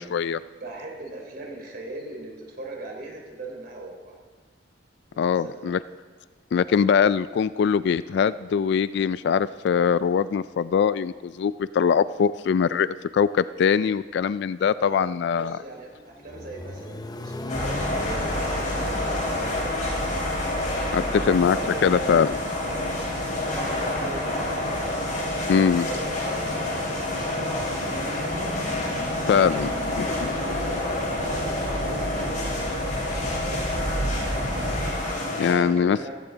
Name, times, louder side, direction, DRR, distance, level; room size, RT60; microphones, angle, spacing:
voice 1, 0.0-0.4 5.2-5.8 6.5-15.6 20.9-21.0 21.3-21.6 21.8-22.3 25.5-25.9 29.3-29.7 30.0-30.3 35.4-36.0, left 7 dB, 65° left, 16 dB, 0.3 m, -22 dB
voice 2, 0.6-4.2 5.1-5.7 14.8-20.0 20.7-22.2 22.7-26.8 27.2-28.6 29.3-30.6 31.2-32.7 33.3-34.5 35.4-36.2, right 2 dB, 55° right, 0 dB, 3.3 m, -40 dB
Accelerating revving vroom, 15.7-21.7, left 1 dB, 20° left, 0.7 m, -39 dB
sound 1, 17.5-35.5, left 2 dB, 40° left, 4.9 m, -29 dB
sound 2, 17.5-34.9, right 1 dB, 90° right, 3.2 m, -34 dB
16.0 x 15.5 x 3.9 m, 1.5 s
head